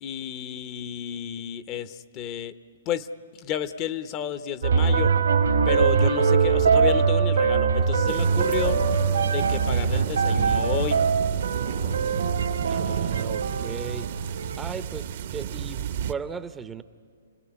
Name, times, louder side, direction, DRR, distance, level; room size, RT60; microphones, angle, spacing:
voice 1, 0.0-2.6 2.9-3.1 3.3-5.1 5.7-8.8 9.2-11.1, left 10 dB, 30° left, 12 dB, 0.9 m, -31 dB
sound 1, 4.6-14.8, right 5 dB, 85° right, 1.9 m, -23 dB
sound 2, 8.0-16.1, right 9 dB, 55° right, 0.9 m, -31 dB
voice 2, 12.7-14.1 14.6-16.8, right 6 dB, 10° right, 12 dB, 0.7 m, -37 dB
29.5 x 19.5 x 9.9 m, 2.2 s
hypercardioid pair, 135°, 0 cm